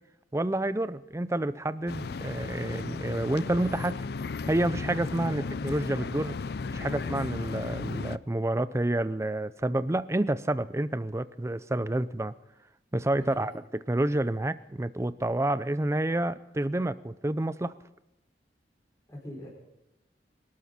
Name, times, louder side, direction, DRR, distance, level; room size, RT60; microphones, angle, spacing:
voice 1, 0.3-4.0 4.5-6.4 6.8-12.3 12.9-13.5 13.9-17.7, right 1 dB, 15° right, 15 dB, 0.5 m, -29 dB
sound 1, 1.9-8.2, left 4 dB, 60° left, 0.5 m, -35 dB
voice 2, 19.1-19.5, left 1 dB, 20° left, -4 dB, 5.1 m, -44 dB
25.5 x 12.5 x 4.3 m, 0.93 s
head